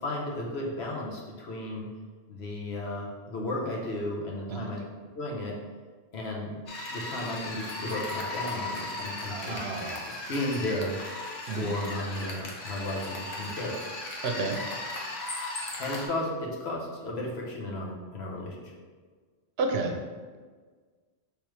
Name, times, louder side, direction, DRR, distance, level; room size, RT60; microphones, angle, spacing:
voice 1, 0.0-1.9 2.3-4.8 5.1-5.5 6.1-6.5 6.9-9.6 10.3-10.9 11.5-13.9 15.8-18.7, left 1 dB, 70° left, -2 dB, 1.1 m, -34 dB
sound 1, 6.7-16.1, left 2 dB, 55° left, 0.9 m, -37 dB
voice 2, 9.2-10.0 11.5-11.7 14.2-14.6 19.6-20.0, right 3 dB, 70° right, 3 dB, 0.8 m, -30 dB
3.4 x 3.1 x 4.7 m, 1.5 s
omnidirectional pair, 1.1 m